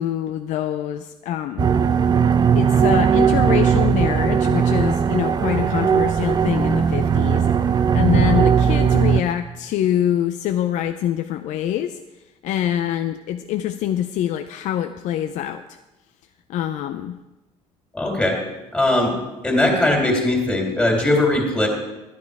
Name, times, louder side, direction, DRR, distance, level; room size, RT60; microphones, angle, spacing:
voice 1, 0.0-1.7 2.6-12.0 12.4-15.6 16.5-17.2, left 11 dB, 70° left, 9 dB, 0.5 m, -25 dB
sound 1, 1.6-9.2, right 7 dB, 30° right, 0.6 m, -18 dB
voice 2, 17.9-18.4 18.7-19.2 19.4-21.7, left 1 dB, 10° left, 1 dB, 2.8 m, -19 dB
12.0 x 9.5 x 4.8 m, 1.0 s
cardioid pair, 130°, 13 cm